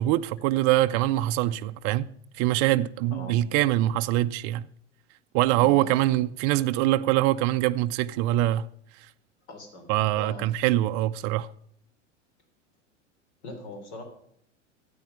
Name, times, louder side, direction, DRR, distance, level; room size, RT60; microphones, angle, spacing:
voice 1, 0.0-2.1 2.4-4.7 5.3-8.7 9.9-11.5, right 15 dB, 40° right, 0.5 m, -24 dB
voice 2, 5.6-6.2 9.5-9.9 10.2-10.4 13.4-14.0, left 2 dB, 65° left, 3.7 m, -41 dB
13.0 x 8.5 x 5.7 m
hypercardioid pair, 90°, 37 cm